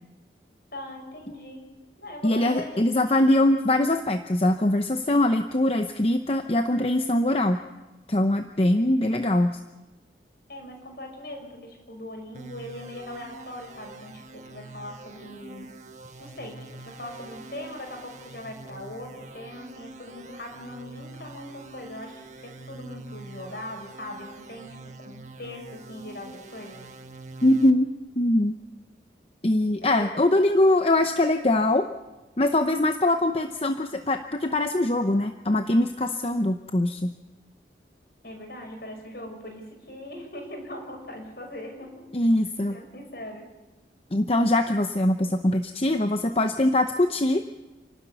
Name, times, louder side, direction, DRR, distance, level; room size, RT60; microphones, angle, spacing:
voice 1, 0.7-1.6 2.0-2.9 10.5-15.7 16.2-26.8 29.8-30.2 38.2-42.0 42.7-43.5, left 1 dB, 60° left, 2 dB, 6.0 m, -40 dB
voice 2, 2.2-7.6 8.1-9.6 27.4-27.9 28.2-28.6 29.4-31.9 32.4-37.1 42.1-42.8 44.1-47.4, left 1 dB, 30° left, 7 dB, 0.8 m, -22 dB
sound 1, 12.3-27.7, right 2 dB, 40° right, 1.4 m, -45 dB
29.0 x 12.5 x 9.4 m, 1.1 s
head